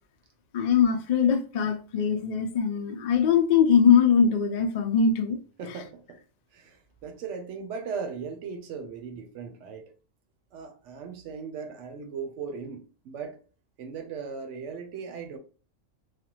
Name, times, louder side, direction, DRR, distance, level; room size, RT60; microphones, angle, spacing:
voice 1, 0.5-5.4 5.7-5.8, left 7 dB, 85° left, 0.3 m, -22 dB
voice 2, 5.6-6.2 6.5-9.9 10.5-13.4 13.8-15.4, right 5 dB, 70° right, 0.9 m, -38 dB
3.3 x 2.1 x 2.8 m
omnidirectional pair, 1.4 m